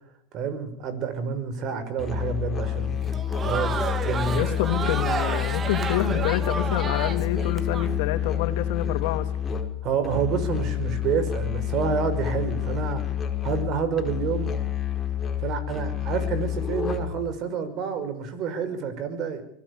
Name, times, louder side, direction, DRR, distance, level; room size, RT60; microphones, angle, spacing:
voice 1, 0.3-3.2 3.4-4.5 9.8-13.0 13.4-14.5 15.4-19.4, right 6 dB, 40° right, 11 dB, 5.4 m, -28 dB
Musical instrument, 2.0-17.3, left 9 dB, 20° left, 4.5 m, -28 dB
Crowd, 3.0-7.9, right 5 dB, 25° right, 2.1 m, -31 dB
voice 2, 4.3-9.3, left 12 dB, 65° left, 8 dB, 3.1 m, -27 dB
24.0 x 17.0 x 8.4 m, 0.72 s
hypercardioid pair, 115°, 0 cm